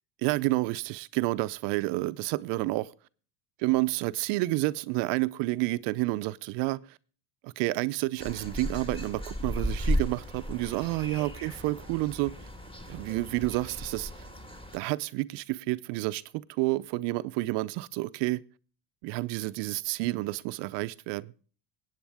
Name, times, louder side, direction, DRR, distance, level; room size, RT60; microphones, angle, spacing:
voice 1, 0.2-2.9 3.6-7.0 7.4-12.3 12.9-14.1 14.7-16.2 16.5-18.4 19.0-21.3, right 20 dB, 60° right, 0.6 m, -29 dB
sound 1, 8.2-14.8, equal, 10° left, 1.6 m, -35 dB
18.0 x 8.6 x 3.5 m
hypercardioid pair, 85°, 49 cm